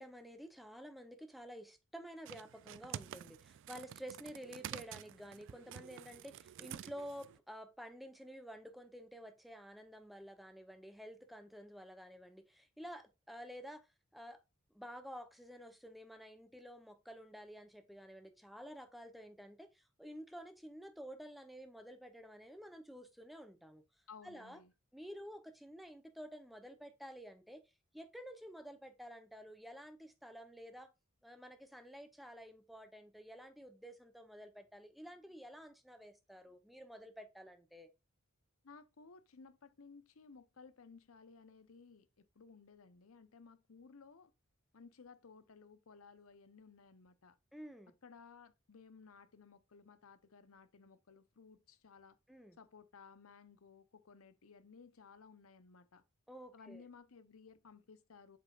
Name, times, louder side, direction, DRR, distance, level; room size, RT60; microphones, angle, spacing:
voice 1, 0.0-13.8 14.1-14.4 14.7-23.8 24.2-24.6 24.9-27.6 27.9-30.9 31.2-37.9 47.5-47.9 52.3-52.6 56.3-56.8, equal, ahead, 0.7 m, -51 dB
sound 1, 2.3-7.4, right 10 dB, 60° right, 0.3 m, -49 dB
voice 2, 24.1-24.7 38.6-44.3 44.7-47.4 48.0-52.2 52.6-56.0 56.5-58.4, left 5 dB, 70° left, 0.7 m, -58 dB
7.9 x 5.0 x 2.4 m
head